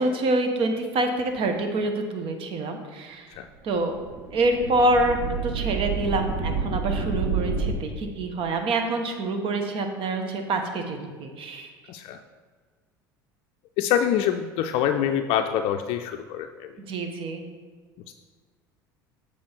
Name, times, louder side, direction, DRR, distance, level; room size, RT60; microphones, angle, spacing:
voice 1, 0.0-3.3 3.6-3.9 4.3-5.2 5.4-11.7 16.8-17.4, right 2 dB, 50° right, 5 dB, 1.1 m, -26 dB
sound 1, 3.9-7.7, right 5 dB, 75° right, 0.9 m, -29 dB
voice 2, 11.9-12.2 13.8-16.7 18.1-18.2, left 9 dB, 60° left, 7 dB, 0.4 m, -25 dB
7.4 x 4.7 x 4.4 m, 1.5 s
hypercardioid pair, 70°, 11 cm